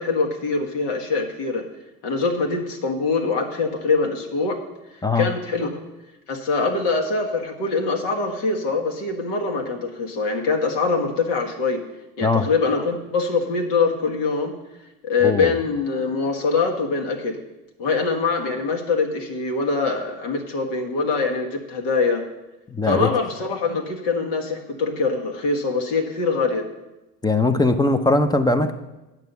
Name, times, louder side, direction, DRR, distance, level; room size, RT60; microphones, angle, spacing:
voice 1, 0.0-1.7 2.0-4.6 5.1-5.8 6.3-11.8 12.2-14.6 15.0-17.4 17.8-22.2 22.9-26.7, left 4 dB, 65° left, 2 dB, 1.7 m, -23 dB
voice 2, 15.2-15.6 22.7-23.1 27.2-28.7, left 2 dB, 10° left, 9 dB, 0.6 m, -20 dB
9.1 x 5.9 x 6.9 m, 1.0 s
hypercardioid pair, 75°, 48 cm